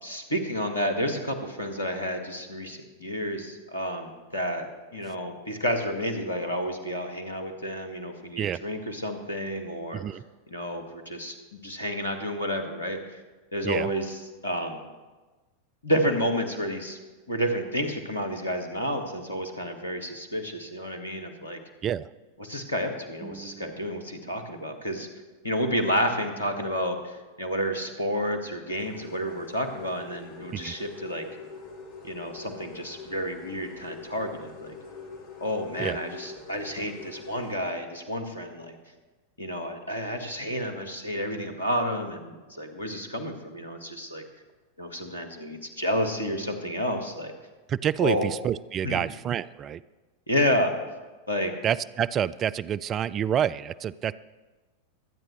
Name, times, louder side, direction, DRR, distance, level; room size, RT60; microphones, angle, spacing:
voice 1, 0.0-4.7 4.9-10.0 10.5-13.0 13.5-14.8 15.8-17.0 17.3-21.6 22.4-25.1 25.4-31.3 32.0-34.8 35.4-38.8 39.4-44.2 44.8-47.3 48.0-48.3 48.8-49.0 50.3-50.7 51.3-51.5, equal, 80° left, 5 dB, 1.6 m, -30 dB
voice 2, 23.2-23.8 30.5-30.7 35.8-36.0 47.7-49.8 51.6-54.1, right 9 dB, 30° right, 18 dB, 0.3 m, -28 dB
sound 1, 28.7-37.5, left 4 dB, 50° left, 1.9 m, -44 dB
25.0 x 9.0 x 3.2 m, 1.2 s
figure-of-eight pair, 90°, 0 cm